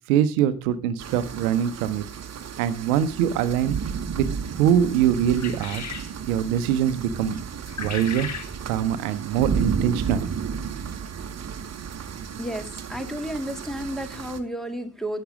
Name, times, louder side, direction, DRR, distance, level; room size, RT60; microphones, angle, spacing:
voice 1, 0.1-2.0 2.6-3.8 4.2-5.9 6.3-7.4 7.8-8.3 8.6-10.2, right 9 dB, 70° right, 13 dB, 0.9 m, -23 dB
sound 1, 1.0-14.4, right 6 dB, 35° right, 1.4 m, -32 dB
sound 2, 5.3-6.1 7.7-8.5, left 6 dB, 40° left, 1.6 m, -35 dB
voice 2, 12.4-15.2, equal, ahead, 4 dB, 1.9 m, -32 dB
11.5 x 8.6 x 4.9 m, 0.33 s
figure-of-eight pair, 45°, 44 cm